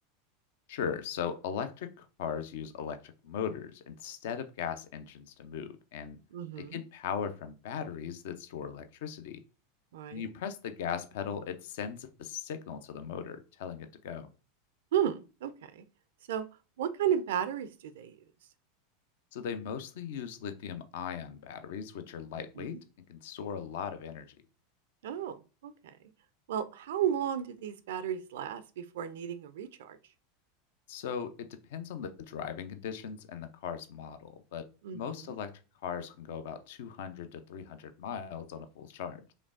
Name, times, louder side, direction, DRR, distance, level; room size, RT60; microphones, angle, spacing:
voice 1, 0.7-6.2 6.6-9.4 10.1-14.3 19.3-22.8 23.1-24.4 30.9-34.7 34.9-39.3, left 7 dB, 60° left, 10 dB, 0.5 m, -38 dB
voice 2, 6.3-6.8 9.9-10.3 14.9-15.8 16.3-16.4 16.8-18.2 22.6-22.8 25.0-26.0 26.5-30.0 34.8-35.0, right 9 dB, 65° right, 13 dB, 0.3 m, -33 dB
5.1 x 3.2 x 2.4 m, 0.33 s
figure-of-eight pair, 85°, 0 cm